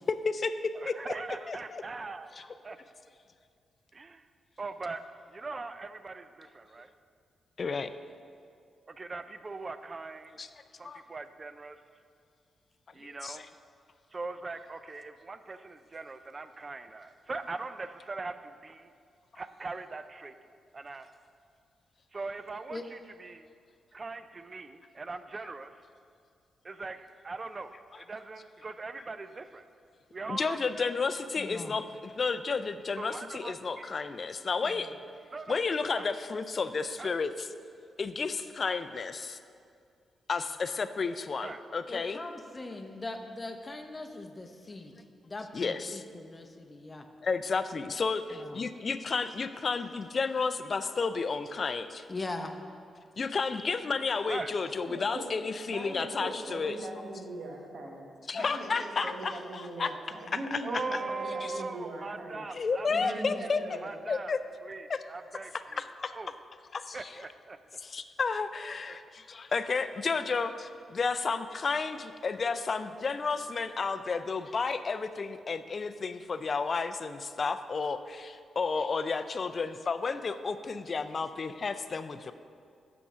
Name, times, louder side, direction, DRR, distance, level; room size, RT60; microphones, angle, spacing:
voice 1, 0.1-0.9 1.5-1.8 2.3-2.5 7.6-7.9 10.4-10.5 10.8-11.0 13.2-13.5 30.3-34.9 35.5-37.5 38.0-39.4 40.3-42.2 45.5-46.0 47.2-52.1 53.2-56.8 58.3-59.9 60.5-60.8 61.4-61.5 62.5-63.6 64.1-64.4 64.9-65.0 65.7-66.1 66.7-67.2 67.8-82.3, left 4 dB, 50° left, 11 dB, 0.4 m, -32 dB
voice 2, 0.8-2.3 2.6-2.8 3.9-4.2 4.6-5.0 5.3-6.9 8.9-10.4 10.8-11.8 12.9-13.4 14.1-18.9 19.4-20.3 20.7-21.1 22.1-23.5 23.9-25.7 26.6-29.6 30.1-30.9 33.0-33.9 35.3-35.6 35.9-36.0 37.0-37.1 41.4-41.6 54.3-54.5 59.0-59.1 60.6-63.5 63.8-64.3 64.6-65.8 66.1-66.4 66.9-67.6 68.9-69.0, right 3 dB, 40° right, 11 dB, 0.4 m, -40 dB
voice 3, 31.4-31.8 34.6-34.8 41.9-44.9 45.2-47.1 48.3-48.7 52.1-52.6 53.5-53.8, left 2 dB, 30° left, 5 dB, 0.7 m, -41 dB
voice 4, 54.7-55.3 55.7-58.1 58.3-62.4 62.9-63.9, right 1 dB, 65° right, 0 dB, 1.2 m, -40 dB
6.8 x 6.0 x 4.9 m, 2.3 s
supercardioid pair, 55°, 0 cm